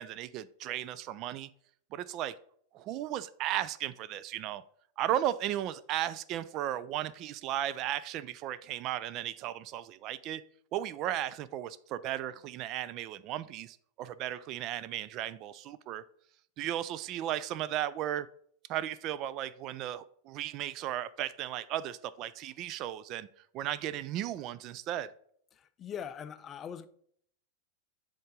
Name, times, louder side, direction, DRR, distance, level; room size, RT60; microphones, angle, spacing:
voice 1, 0.0-1.5 1.9-2.3 2.7-4.6 5.0-10.4 10.7-16.0 16.6-18.3 18.7-23.3 23.5-25.1, right 12 dB, 40° right, 0.3 m, -35 dB
voice 2, 25.5-26.9, left 8 dB, 25° left, 0.4 m, -41 dB
7.7 x 3.7 x 5.0 m
figure-of-eight pair, 90°, 0 cm